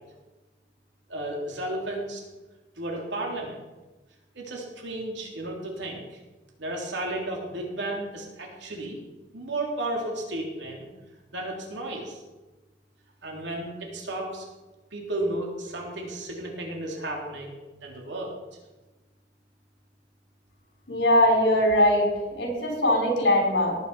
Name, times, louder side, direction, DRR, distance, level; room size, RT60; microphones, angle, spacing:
voice 1, 1.1-2.2 2.8-3.6 4.3-6.0 6.6-9.0 9.3-10.9 11.3-12.2 13.2-14.5 14.9-17.6 17.8-18.4, right 1 dB, 80° right, -1 dB, 3.3 m, -33 dB
voice 2, 20.9-23.8, left 1 dB, 75° left, 0 dB, 4.4 m, -21 dB
18.5 x 9.4 x 4.9 m, 1.2 s
head